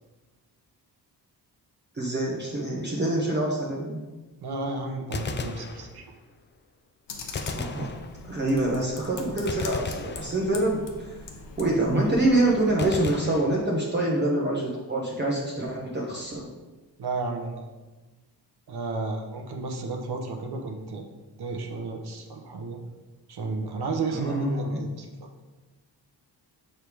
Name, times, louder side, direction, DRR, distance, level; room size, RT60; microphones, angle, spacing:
voice 1, 1.9-4.0 7.5-7.9 8.3-11.1 11.6-16.5 24.1-24.8, right 1 dB, 25° right, -3 dB, 0.9 m, -26 dB
voice 2, 4.4-6.0 17.0-17.6 18.7-21.0 21.4-22.8 23.3-25.1, right 3 dB, 65° right, 3 dB, 1.0 m, -32 dB
Gunshot gunfire, 5.1-6.3 7.3-8.6 9.5-10.9 12.8-14.1, left 4 dB, 30° left, 0.4 m, -36 dB
Computer keyboard, 7.1-12.7, left 4 dB, 80° left, 0.9 m, -42 dB
6.6 x 3.5 x 4.6 m, 1.2 s
cardioid pair, 100°, 42 cm